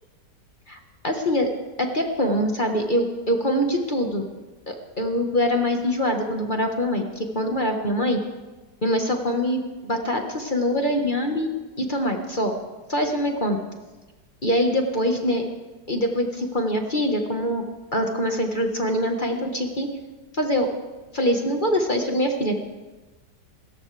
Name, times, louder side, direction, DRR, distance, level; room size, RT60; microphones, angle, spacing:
voice 1, 0.7-1.5 1.8-4.2 4.7-8.2 8.8-12.5 12.9-13.6 14.4-15.4 15.9-17.6 17.9-19.9 20.3-20.7 21.1-22.5, equal, 30° left, 3 dB, 1.5 m, -24 dB
28.0 x 14.5 x 3.4 m, 1.2 s
omnidirectional pair, 1.9 m